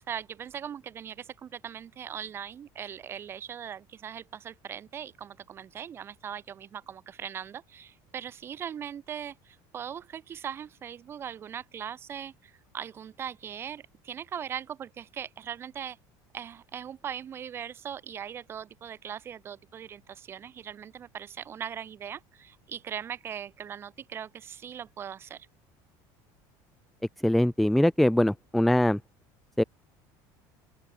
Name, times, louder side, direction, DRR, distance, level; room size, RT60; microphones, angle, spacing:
voice 1, 0.1-16.0 16.3-25.5, right 8 dB, 25° right, 4.3 m, -40 dB
voice 2, 27.2-29.0 29.6-29.7, left 1 dB, ahead, 0.4 m, -22 dB
open air
cardioid pair, 175°, 10 cm